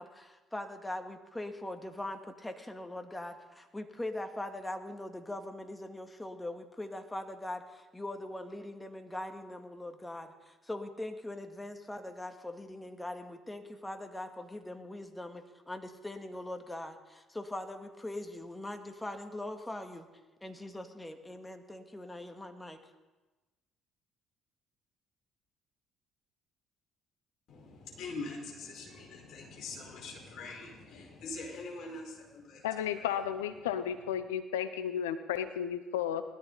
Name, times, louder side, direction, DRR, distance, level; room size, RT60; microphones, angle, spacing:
voice 1, 0.0-20.1 20.4-22.8, left 1 dB, 10° left, 5 dB, 2.1 m, -41 dB
voice 2, 27.5-32.7 33.0-33.1 33.6-33.7, left 3 dB, 55° left, 0 dB, 5.3 m, -43 dB
voice 3, 32.6-36.2, left 9 dB, 75° left, 11 dB, 0.8 m, -33 dB
20.0 x 14.0 x 4.2 m, 1.2 s
figure-of-eight pair, 50°, 0 cm